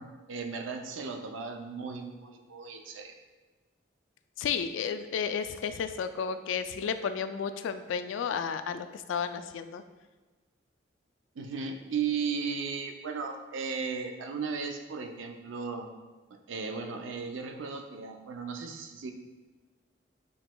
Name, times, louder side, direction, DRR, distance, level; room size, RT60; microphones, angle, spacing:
voice 1, 0.0-3.2 11.4-15.9 16.3-19.1, right 5 dB, 90° right, 4 dB, 0.5 m, -36 dB
voice 2, 4.4-9.8, left 6 dB, 85° left, 10 dB, 0.3 m, -32 dB
7.6 x 2.9 x 2.2 m, 1.3 s
head